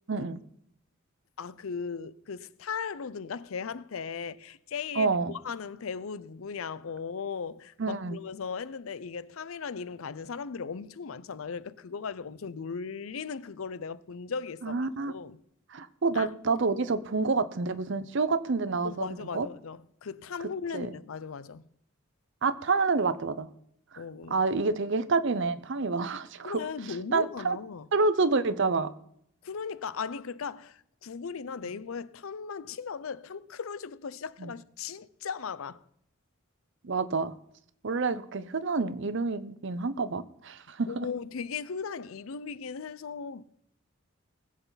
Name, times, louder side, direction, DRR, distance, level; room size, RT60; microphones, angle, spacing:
voice 1, 0.1-0.4 5.0-5.3 7.8-8.2 14.6-15.1 15.7-19.5 20.7-20.9 22.4-23.5 24.3-26.6 27.1-27.6 27.9-28.9 34.4-34.5 36.8-37.3 37.8-41.1, right 4 dB, 60° right, 0.7 m, -28 dB
voice 2, 1.4-15.4 16.1-16.3 18.8-21.7 24.0-24.4 26.4-27.9 29.4-35.8 40.9-43.4, left 5 dB, 85° left, 0.6 m, -37 dB
19.5 x 8.1 x 4.0 m
head